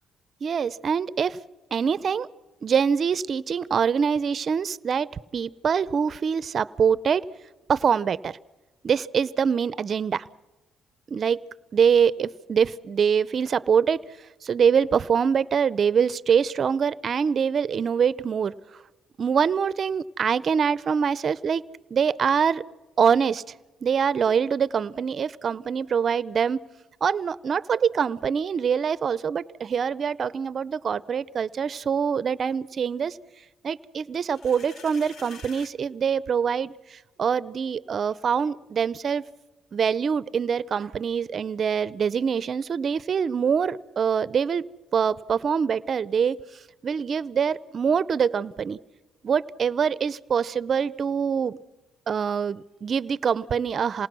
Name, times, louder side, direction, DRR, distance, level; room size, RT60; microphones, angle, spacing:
voice 1, 0.4-1.4 1.7-2.3 2.6-7.2 7.7-8.3 8.8-10.2 11.1-11.4 11.7-14.0 14.4-18.5 19.2-21.6 21.9-22.6 23.0-23.4 23.8-26.6 27.0-33.2 33.6-39.2 39.7-44.7 44.9-46.4 46.8-48.8 49.2-51.6 52.1-54.1, right 7 dB, 50° right, 18 dB, 0.6 m, -24 dB
sound 1, 34.1-35.7, left 5 dB, 65° left, 1.4 m, -46 dB
27.5 x 19.0 x 6.1 m, 1.1 s
cardioid pair, 90°, 0 cm